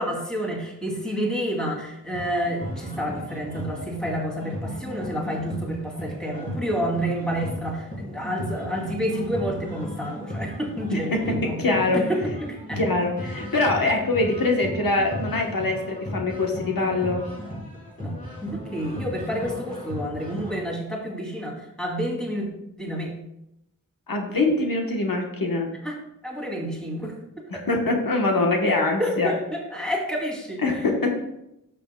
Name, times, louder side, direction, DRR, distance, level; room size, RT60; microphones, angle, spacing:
voice 1, 0.0-11.6 11.9-12.8 18.0-22.5 22.8-23.1 25.8-25.9 26.2-27.4 29.0-30.6, equal, ahead, -3 dB, 2.6 m, -29 dB
sound 1, 2.1-20.6, equal, 25° left, 3.0 m, -36 dB
voice 2, 10.9-12.0 12.8-17.2 24.1-25.7 27.5-29.3 30.6-31.2, left 2 dB, 85° left, 2 dB, 1.1 m, -23 dB
12.0 x 6.9 x 2.2 m, 0.84 s
wide cardioid pair, 60°, 33 cm